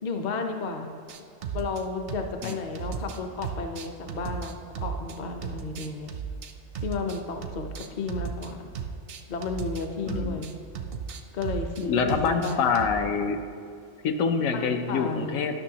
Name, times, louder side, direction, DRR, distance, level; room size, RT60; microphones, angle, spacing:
voice 1, 0.0-1.0 1.5-6.1 6.8-8.7 9.3-10.5 11.3-12.7 14.5-15.4, left 4 dB, 50° left, 5 dB, 0.5 m, -33 dB
sound 1, 1.1-1.8 2.1-5.2 5.4-8.5 8.7-13.1, right 6 dB, 65° right, 0.6 m, -35 dB
voice 2, 10.1-10.4 11.8-13.4 14.0-15.6, left 5 dB, 80° left, 6 dB, 1.0 m, -26 dB
12.0 x 6.1 x 2.8 m, 2.3 s
omnidirectional pair, 1.4 m